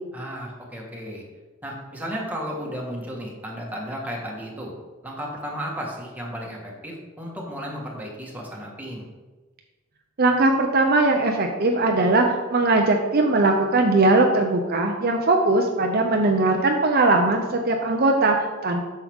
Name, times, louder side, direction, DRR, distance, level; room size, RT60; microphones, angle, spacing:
voice 1, 0.1-1.2 1.6-4.7 5.0-9.1, equal, 10° right, -2 dB, 1.6 m, -34 dB
voice 2, 10.2-18.9, right 2 dB, 50° right, 2 dB, 0.7 m, -20 dB
8.4 x 6.6 x 3.6 m, 1.3 s
head